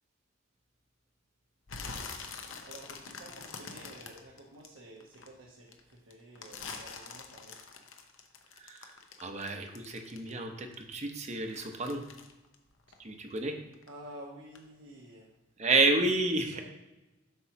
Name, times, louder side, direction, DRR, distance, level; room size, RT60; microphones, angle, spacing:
sound 1, 1.7-5.3 5.7-10.5 10.7-13.4 13.7-14.1 14.5-14.6, left 5 dB, 85° left, 0.8 m, -45 dB
voice 1, 2.6-7.6 13.0-13.2 13.9-15.4 16.4-16.6, right 1 dB, 90° right, -3 dB, 1.1 m, -50 dB
voice 2, 8.6-12.0 13.0-13.6 15.6-16.6, right 3 dB, 35° right, 5 dB, 0.8 m, -30 dB
8.3 x 3.1 x 5.7 m, 1.0 s
head